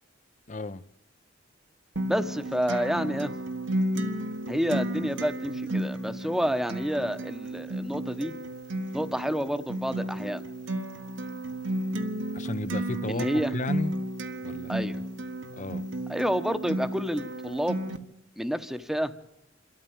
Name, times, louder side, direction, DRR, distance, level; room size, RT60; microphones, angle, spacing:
voice 1, 0.5-0.8 12.3-13.3 13.5-14.0 14.4-14.9 15.6-15.9, left 2 dB, 40° left, 0.8 m, -33 dB
Acoustic guitar, 2.0-18.0, right 1 dB, 75° right, 1.6 m, -33 dB
voice 2, 2.1-3.3 4.5-8.3 8.9-10.4 13.1-13.5 14.7-15.0 16.1-17.8 18.4-19.1, equal, ahead, 1.0 m, -29 dB
27.0 x 13.5 x 8.8 m
head